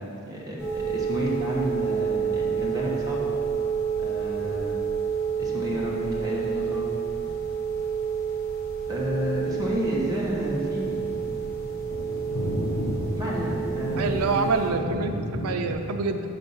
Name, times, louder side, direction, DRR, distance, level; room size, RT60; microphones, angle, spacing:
voice 1, 0.0-3.3 4.0-4.8 5.4-6.9 8.9-11.0 13.2-14.5, equal, 15° right, -6 dB, 1.1 m, -30 dB
sound 1, 0.6-14.7, right 7 dB, 10° left, 1.6 m, -29 dB
sound 2, 8.9-15.7, left 1 dB, 60° left, 0.9 m, -33 dB
voice 2, 14.0-16.2, right 4 dB, 85° right, 7 dB, 0.5 m, -26 dB
5.8 x 5.4 x 5.5 m, 2.6 s
head